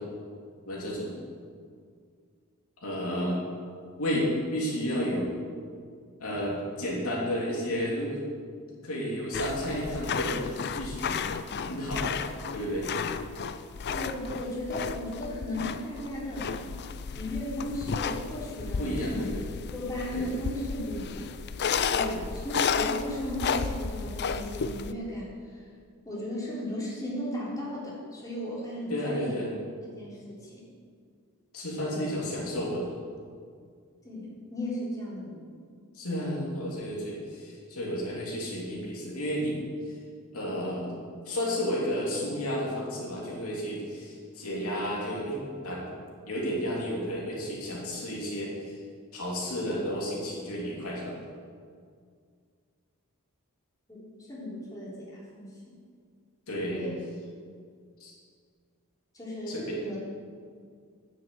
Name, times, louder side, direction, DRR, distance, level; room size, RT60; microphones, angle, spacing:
voice 1, 0.7-1.2 2.8-3.4 4.0-5.3 6.2-8.2 8.8-11.4 11.6-12.2 12.5-12.9 18.8-19.4 20.1-20.2 22.0-22.2 28.9-29.5 31.5-32.9 35.9-39.6 40.3-40.9 41.2-45.4 45.6-45.8 46.3-48.8 49.1-51.2 56.5-56.8 58.0-58.1 59.5-59.8, equal, 75° left, -4 dB, 3.0 m, -32 dB
sound 1, 9.3-24.9, left 6 dB, 50° left, 0.5 m, -33 dB
voice 2, 13.9-16.5 17.1-19.3 19.7-21.6 21.9-25.6 26.0-29.4 29.8-30.6 31.9-32.0 34.0-35.4 53.9-54.0 54.3-55.5 56.7-57.0 59.1-59.6 59.8-60.0, left 1 dB, 15° left, -7 dB, 3.7 m, -36 dB
10.5 x 7.5 x 7.8 m, 2.1 s
head